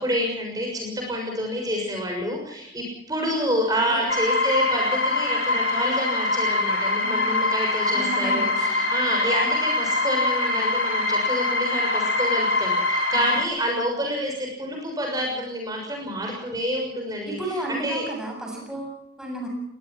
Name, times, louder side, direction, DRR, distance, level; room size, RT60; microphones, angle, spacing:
voice 1, 0.0-17.4 17.7-18.1, equal, 20° right, 0 dB, 6.6 m, -28 dB
voice 2, 3.5-4.0 7.0-7.5 7.9-8.9 13.3-13.4 17.2-19.5, right 2 dB, 5° right, 0 dB, 7.4 m, -33 dB
sound 1, 4.1-13.4, left 2 dB, 85° left, 3.5 m, -23 dB
23.0 x 20.0 x 6.1 m, 0.77 s
head